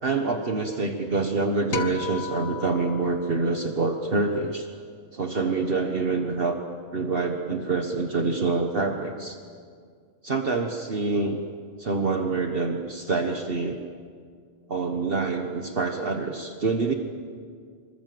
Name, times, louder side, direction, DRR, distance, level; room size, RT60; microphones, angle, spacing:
voice 1, 0.0-4.7 5.1-6.6 6.9-9.4 10.2-11.4 11.8-13.8 14.7-16.9, right 3 dB, 50° right, 4 dB, 1.6 m, -26 dB
sound 1, 1.7-4.2, left 5 dB, 65° left, 2.2 m, -35 dB
26.0 x 25.5 x 7.8 m, 2.1 s
omnidirectional pair, 1.2 m